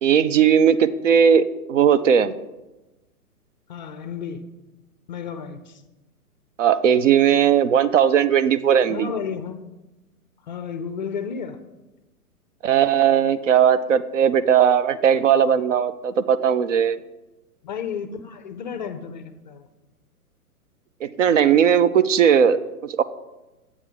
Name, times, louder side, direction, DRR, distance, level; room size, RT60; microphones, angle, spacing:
voice 1, 0.0-2.4 6.6-9.1 12.6-17.0 21.0-23.0, right 8 dB, 55° right, 14 dB, 0.5 m, -18 dB
voice 2, 3.7-4.5 5.1-5.8 8.9-9.6 10.4-11.6 17.6-19.7, left 6 dB, 30° left, 9 dB, 0.4 m, -32 dB
9.5 x 8.4 x 3.5 m, 1.0 s
figure-of-eight pair, 120°, 46 cm